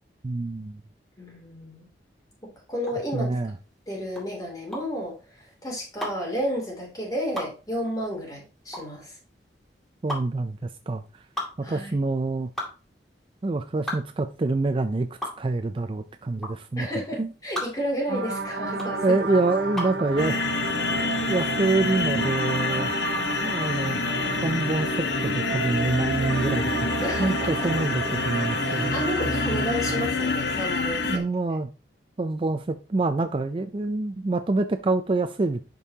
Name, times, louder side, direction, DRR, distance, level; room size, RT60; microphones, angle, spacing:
voice 1, 0.2-0.8 3.1-3.5 10.0-11.0 11.7-12.5 13.4-15.1 15.4-17.3 19.0-20.7 21.0-22.9 23.4-24.0 24.4-26.9 27.2-28.9 31.1-31.7 32.2-35.6, right 3 dB, 30° right, 0.4 m, -26 dB
voice 2, 1.2-1.8 2.4-3.4 3.9-5.1 5.6-9.2 11.6-11.9 16.8-19.2 27.0-27.7 28.6-31.2, equal, 20° left, 2.8 m, -31 dB
sound 1, 2.8-20.0, left 1 dB, ahead, 2.4 m, -37 dB
sound 2, 18.1-30.0, right 3 dB, 70° right, 1.1 m, -32 dB
sound 3, 20.2-31.2, left 3 dB, 75° left, 0.9 m, -27 dB
11.0 x 5.4 x 2.8 m
head